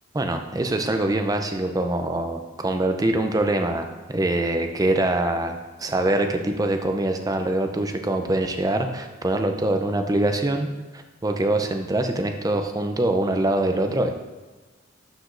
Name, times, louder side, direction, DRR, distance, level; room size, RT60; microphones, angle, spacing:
voice 1, 0.1-14.1, right 1 dB, 20° right, 5 dB, 0.5 m, -24 dB
12.0 x 5.0 x 2.6 m, 1.3 s
head